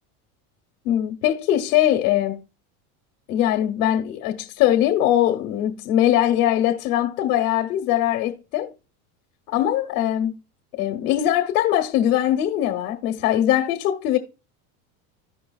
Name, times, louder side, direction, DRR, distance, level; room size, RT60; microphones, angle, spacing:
voice 1, 0.8-2.4 3.3-8.7 9.5-10.3 10.7-14.2, left 12 dB, 80° left, 1.2 m, -21 dB
14.5 x 5.0 x 2.3 m
supercardioid pair, 130°, 43 cm